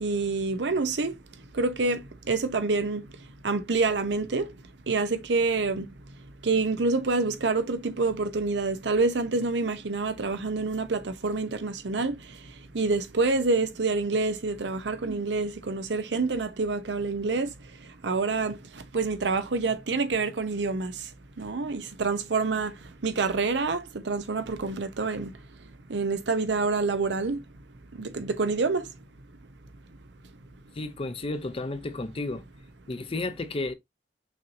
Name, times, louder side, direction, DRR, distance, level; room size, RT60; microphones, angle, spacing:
voice 1, 0.0-1.1 1.6-3.1 3.4-4.4 4.9-5.9 6.4-12.1 12.7-17.5 18.0-18.6 18.9-20.9 21.4-22.7 23.0-25.3 25.9-27.4 28.0-28.9, right 3 dB, 80° right, 0.7 m, -27 dB
voice 2, 30.7-32.4 32.9-33.7, left 2 dB, 30° left, 0.5 m, -32 dB
5.9 x 2.9 x 2.6 m
head